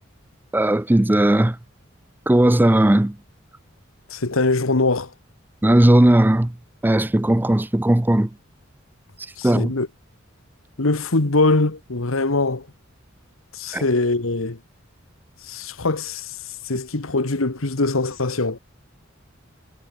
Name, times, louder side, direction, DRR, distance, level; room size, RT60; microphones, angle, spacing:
voice 1, 0.5-1.6 2.3-3.2 5.6-6.5 6.8-8.3 9.4-9.7 13.7-13.8, right 1 dB, 10° right, 0.5 m, -17 dB
voice 2, 4.1-5.1 9.4-9.9 10.8-12.7 13.5-14.6 15.4-16.4 16.6-18.6, left 2 dB, 90° left, 1.6 m, -22 dB
head